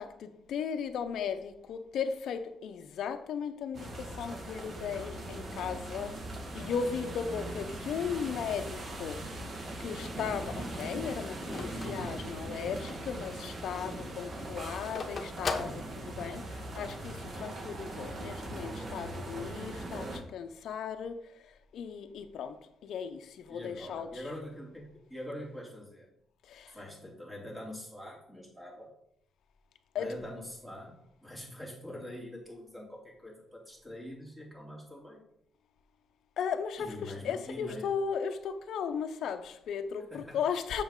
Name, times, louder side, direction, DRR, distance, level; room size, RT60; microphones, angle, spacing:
voice 1, 0.0-6.1 6.5-9.2 9.8-21.2 21.7-22.6 22.8-24.1 26.5-26.8 29.9-30.1 36.4-40.8, left 7 dB, 70° left, 0.6 m, -36 dB
sound 1, 3.7-20.2, right 1 dB, 45° right, 1.5 m, -40 dB
Telephone, 9.5-12.9 13.3-13.4 13.6-16.5, left 4 dB, 40° left, 1.0 m, -39 dB
voice 2, 23.5-26.1 26.7-28.9 29.9-35.2 36.8-37.9 40.1-40.4, left 1 dB, 10° right, 2.8 m, -44 dB
7.1 x 5.8 x 3.7 m
cardioid pair, 90°, 0 cm